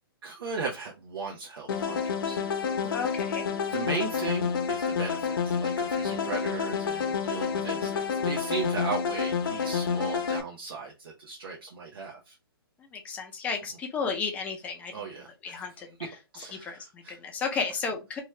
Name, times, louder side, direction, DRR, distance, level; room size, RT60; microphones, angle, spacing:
voice 1, 0.2-2.4 2.8-2.9 3.7-12.3 14.9-15.6 16.3-17.2, right 4 dB, 70° right, -2 dB, 0.8 m, -37 dB
sound 1, 1.7-10.4, left 6 dB, 60° left, 0.7 m, -29 dB
voice 2, 2.9-3.5 12.8-14.9 15.4-15.9 16.5-18.2, left 5 dB, 10° left, 3 dB, 0.5 m, -33 dB
2.9 x 2.3 x 3.1 m, 0.26 s
hypercardioid pair, 150°, 13 cm